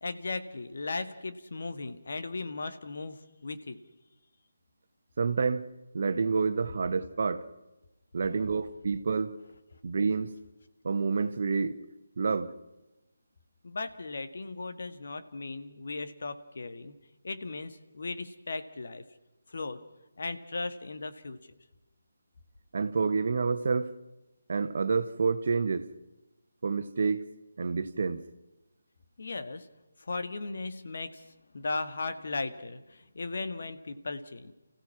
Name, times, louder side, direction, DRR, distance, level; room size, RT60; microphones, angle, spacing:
voice 1, 0.0-3.8 13.6-17.0 17.2-19.0 19.5-19.8 20.2-21.4 29.2-29.7 30.1-31.2 31.5-34.5, left 3 dB, 60° left, 9 dB, 1.8 m, -37 dB
voice 2, 5.2-5.7 5.9-7.4 8.1-9.3 9.8-10.3 10.8-11.7 12.2-12.5 22.7-23.9 24.5-25.9 26.6-27.2 27.6-28.2, right 4 dB, 55° right, 10 dB, 1.4 m, -28 dB
29.5 x 16.0 x 6.1 m, 1.0 s
figure-of-eight pair, 150°, 0 cm